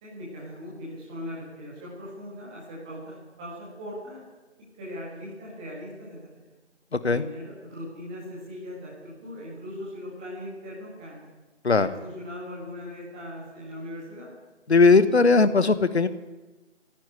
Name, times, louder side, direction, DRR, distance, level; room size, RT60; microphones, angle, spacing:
voice 1, 0.0-4.2 4.8-6.5 7.1-11.3 11.7-14.3, left 1 dB, 5° right, -6 dB, 1.6 m, -39 dB
voice 2, 14.7-16.1, left 4 dB, 60° left, 12 dB, 1.3 m, -18 dB
27.5 x 10.5 x 9.8 m, 1.2 s
figure-of-eight pair, 165°, 36 cm